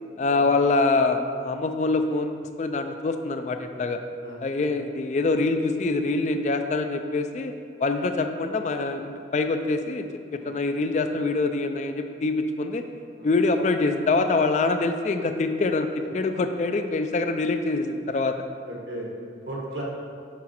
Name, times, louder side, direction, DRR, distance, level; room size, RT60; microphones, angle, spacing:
voice 1, 0.2-4.0 4.4-7.5 7.8-10.1 10.3-12.8 13.2-18.3, left 3 dB, 40° left, 7 dB, 0.3 m, -25 dB
voice 2, 18.6-19.1 19.5-19.8, right 1 dB, 70° right, -3 dB, 1.4 m, -36 dB
6.0 x 5.1 x 4.3 m, 2.3 s
head